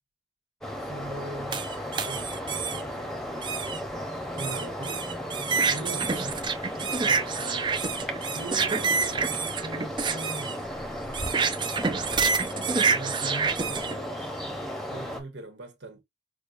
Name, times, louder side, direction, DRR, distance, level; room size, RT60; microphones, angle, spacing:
sound 1, 0.6-15.2, equal, ahead, 0.9 m, -35 dB
voice 1, 0.8-3.6 4.3-5.1 5.7-6.4 7.0-7.8 8.2-10.7 12.9-14.6 14.9-16.0, right 2 dB, 85° right, 1.4 m, -41 dB
sound 2, 1.5-2.8 3.4-3.8 4.4-13.9, right 5 dB, 25° right, 0.4 m, -28 dB
6.4 x 2.3 x 2.6 m
head